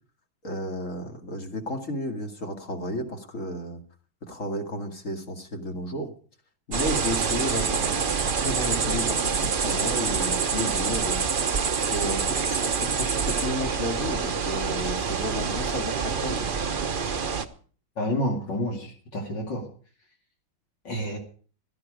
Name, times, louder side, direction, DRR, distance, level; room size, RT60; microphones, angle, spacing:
voice 1, 0.4-3.8 4.3-6.1 6.7-11.2 11.9-16.5, left 1 dB, 40° left, 4 dB, 2.4 m, -33 dB
sound 1, 6.7-17.5, right 5 dB, 40° right, 0.7 m, -26 dB
voice 2, 18.0-19.7 20.8-21.2, equal, 60° left, 0 dB, 3.2 m, -29 dB
16.5 x 12.5 x 5.1 m, 0.43 s
omnidirectional pair, 2.2 m